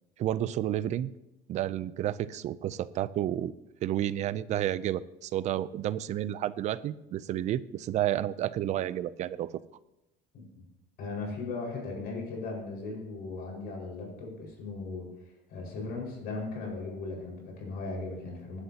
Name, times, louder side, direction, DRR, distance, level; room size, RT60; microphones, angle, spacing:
voice 1, 0.2-1.1 1.5-3.5 3.8-9.5, right 12 dB, 40° right, 16 dB, 0.4 m, -31 dB
voice 2, 11.0-18.6, left 3 dB, 55° left, 0 dB, 4.9 m, -38 dB
19.5 x 11.5 x 2.8 m, 0.94 s
cardioid pair, 160°, 19 cm